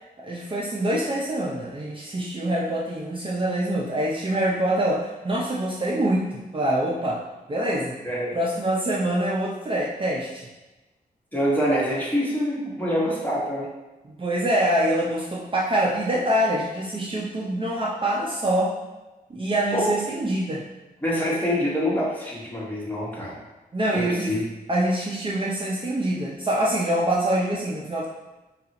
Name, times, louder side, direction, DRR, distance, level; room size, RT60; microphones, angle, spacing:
voice 1, 0.2-7.2 7.5-8.0 8.3-10.5 14.0-18.7 19.3-20.6 23.7-24.3 24.7-28.1, right 1 dB, 30° right, -4 dB, 0.5 m, -25 dB
voice 2, 11.3-13.7 19.7-19.9 21.0-23.4 23.9-24.4, equal, 10° left, -6 dB, 1.3 m, -25 dB
5.2 x 2.4 x 2.8 m, 1.1 s
wide cardioid pair, 75°, 17 cm